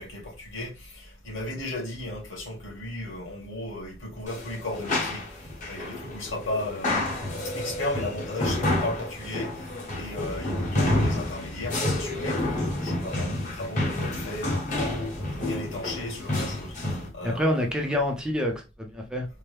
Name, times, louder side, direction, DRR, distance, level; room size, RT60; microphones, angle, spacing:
voice 1, 0.0-7.0 7.4-18.0, left 1 dB, 70° left, 2.3 m, -35 dB
sound 1, 4.3-17.1, left 1 dB, 40° left, 1.3 m, -29 dB
voice 2, 17.2-19.3, left 1 dB, 5° right, 0.6 m, -27 dB
4.5 x 2.1 x 3.4 m
head